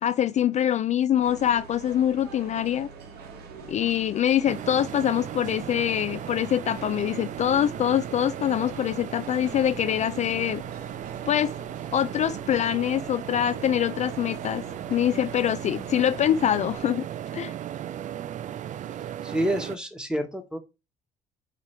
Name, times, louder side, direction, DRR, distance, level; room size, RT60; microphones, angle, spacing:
voice 1, 0.0-2.9 3.7-10.6 11.3-11.5 11.9-14.6 14.9-17.1 17.3-17.5, left 10 dB, 45° left, 0.4 m, -24 dB
sound 1, 1.2-16.8, right 4 dB, 70° right, 1.6 m, -44 dB
sound 2, 4.5-19.8, right 10 dB, 45° right, 0.4 m, -36 dB
voice 2, 19.2-20.6, right 1 dB, 5° right, 1.4 m, -28 dB
8.3 x 3.0 x 4.7 m
cardioid pair, 110°, 17 cm